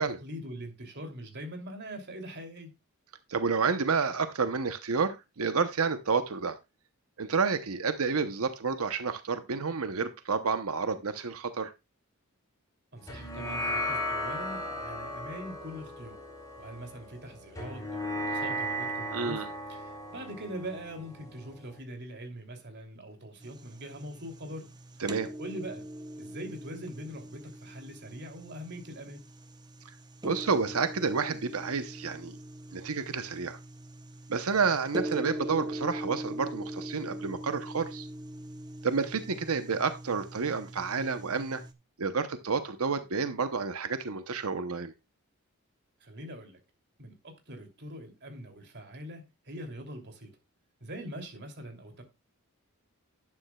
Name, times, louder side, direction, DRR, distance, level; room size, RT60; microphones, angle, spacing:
voice 1, 0.0-2.7 12.9-16.2 16.6-19.4 19.7-24.7 25.4-25.9 26.2-29.2 46.0-46.6 47.0-50.3 50.8-52.0, equal, 50° right, 2.9 m, -42 dB
voice 2, 3.3-6.6 7.2-11.7 19.1-19.5 25.0-25.3 30.2-32.4 32.7-33.6 34.3-38.1 38.8-41.6 42.0-44.9, right 5 dB, 70° right, 0.8 m, -30 dB
sound 1, 13.1-21.8, equal, 15° left, 3.8 m, -36 dB
sound 2, 23.4-41.7, right 1 dB, 20° right, 0.8 m, -42 dB
11.5 x 9.7 x 2.3 m
head